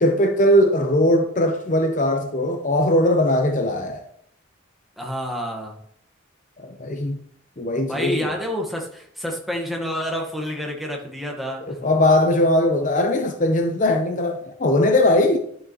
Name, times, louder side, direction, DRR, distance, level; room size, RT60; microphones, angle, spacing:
voice 1, 0.0-4.0 6.6-7.2 7.6-8.4 11.6-15.4, left 1 dB, 40° left, 0.7 m, -20 dB
voice 2, 5.0-5.8 7.9-11.8, equal, ahead, 1.4 m, -28 dB
11.5 x 6.6 x 3.0 m
head